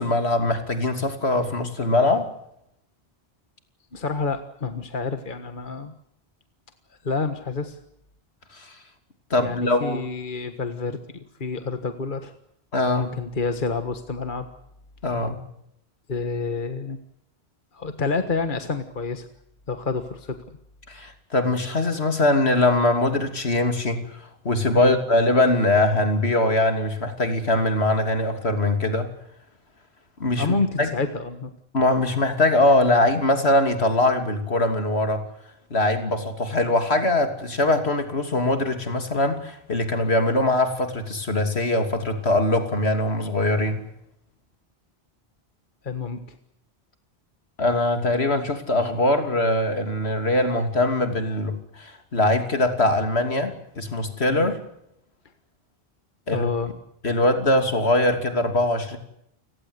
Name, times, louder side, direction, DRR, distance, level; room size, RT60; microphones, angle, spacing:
voice 1, 0.0-2.3 8.5-8.7 9.3-10.0 12.7-13.2 15.0-15.4 20.9-24.1 24.4-29.1 30.2-30.9 31.7-35.3 35.7-43.8 47.6-54.5 56.3-56.5 57.0-59.0, left 2 dB, 75° left, 7 dB, 3.2 m, -22 dB
voice 2, 3.9-5.9 6.9-7.8 9.4-12.3 13.0-14.5 16.1-17.0 17.7-19.3 19.7-20.4 24.8-25.0 30.4-31.5 45.8-46.4 54.3-54.5 56.3-56.7, left 4 dB, 50° left, 9 dB, 1.7 m, -28 dB
29.5 x 17.5 x 8.2 m, 0.78 s
omnidirectional pair, 1.1 m